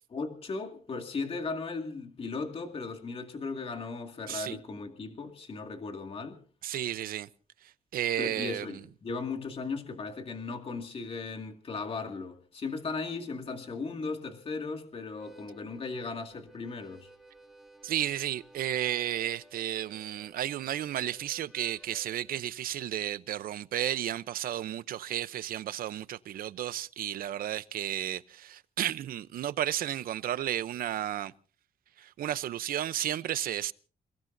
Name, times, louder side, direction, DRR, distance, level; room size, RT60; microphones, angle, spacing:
voice 1, 0.1-6.4 8.2-17.1, left 4 dB, 40° left, 2.3 m, -37 dB
voice 2, 6.6-7.3 7.9-8.8 17.8-31.3 32.0-33.7, right 12 dB, 85° right, 0.7 m, -33 dB
Harmonica, 15.0-22.4, right 1 dB, ahead, 1.8 m, -57 dB
29.0 x 18.0 x 2.7 m
cardioid pair, 125°, 15 cm